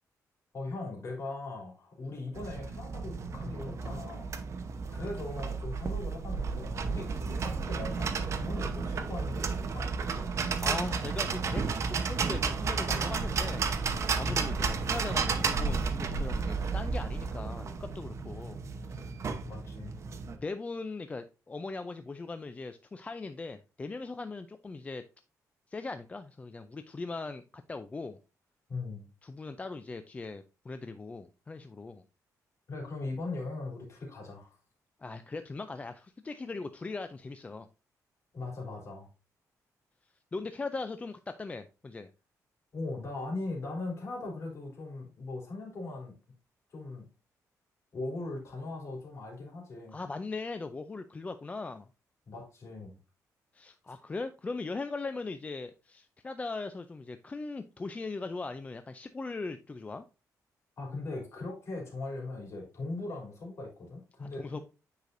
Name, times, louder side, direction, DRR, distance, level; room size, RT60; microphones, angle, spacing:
voice 1, 0.5-4.3 4.9-10.0 14.3-14.6 19.5-19.9 28.7-29.1 32.7-34.5 38.3-39.1 42.7-46.1 46.7-47.1 47.9-50.0 52.3-53.0 60.8-64.6, left 2 dB, 50° left, -1 dB, 3.2 m, -39 dB
sound 1, 2.3-20.4, right 5 dB, 50° right, 0.8 m, -32 dB
voice 2, 10.6-13.7 14.2-18.6 18.9-19.1 20.3-25.0 25.7-27.4 27.7-28.2 29.2-32.0 35.0-37.7 40.3-42.1 49.9-51.9 53.5-60.0 64.2-64.6, left 3 dB, 20° left, 9 dB, 0.4 m, -39 dB
9.1 x 4.9 x 2.6 m, 0.31 s
cardioid pair, 130°, 6 cm